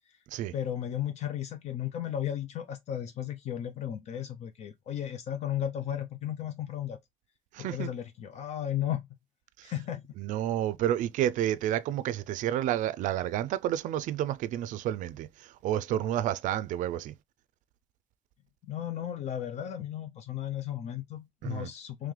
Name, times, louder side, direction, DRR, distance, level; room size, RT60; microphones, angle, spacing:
voice 1, 0.5-7.0 7.6-9.1 9.6-10.0 18.6-22.1, left 10 dB, 55° left, 0.5 m, -34 dB
voice 2, 7.5-7.9 10.2-15.3 15.6-17.1 21.4-21.7, right 12 dB, 70° right, 0.4 m, -30 dB
3.2 x 3.1 x 3.6 m
cardioid pair, 155°, 14 cm